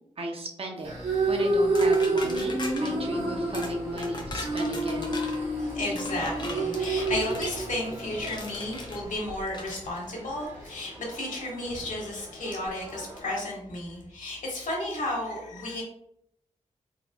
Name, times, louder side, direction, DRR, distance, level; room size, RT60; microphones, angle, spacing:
voice 1, 0.2-0.9 1.3-5.2, right 1 dB, 50° right, 1 dB, 0.7 m, -36 dB
sound 1, 0.8-9.1, right 2 dB, 65° right, 1.2 m, -28 dB
sound 2, 1.7-2.9 3.5-3.7 4.0-5.4 5.9-7.6 8.3-9.0 9.5-9.8, left 2 dB, 35° left, 0.7 m, -39 dB
sound 3, 2.8-13.3, equal, 20° right, 1.3 m, -46 dB
voice 2, 5.5-15.8, left 1 dB, 85° left, -3 dB, 1.5 m, -33 dB
4.1 x 4.0 x 2.3 m, 0.74 s
wide cardioid pair, 160°, 13 cm